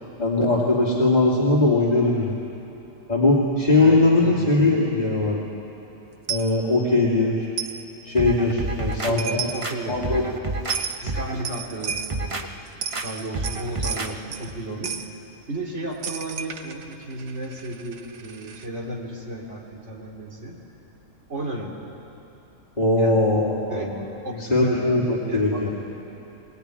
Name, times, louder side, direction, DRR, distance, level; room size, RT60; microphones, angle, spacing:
voice 1, 0.2-2.3 3.1-5.4 6.3-7.5 8.0-9.5 9.9-10.2 22.8-24.0 24.4-25.7, left 2 dB, 30° left, -6 dB, 2.7 m, -20 dB
voice 2, 3.8-4.5 8.9-10.4 11.0-12.6 13.0-15.2 15.5-20.6 21.3-21.8 23.0-23.2 23.7-23.9 24.2-24.9 25.3-25.7, right 1 dB, 60° right, -1 dB, 3.2 m, -34 dB
Coin (dropping), 6.3-6.5 7.6-7.8 8.9-9.0 9.2-9.7 10.7-11.0 11.5-12.2 12.7-14.5 14.8-15.1 16.0-18.7, right 7 dB, 90° right, 1.4 m, -32 dB
sound 1, 8.2-9.1 9.6-10.8 11.1-11.4 11.9-12.5 12.9-13.1 13.3-14.1 14.5-14.6, right 2 dB, 25° right, 1.0 m, -29 dB
21.5 x 20.5 x 9.7 m, 2.9 s
omnidirectional pair, 1.4 m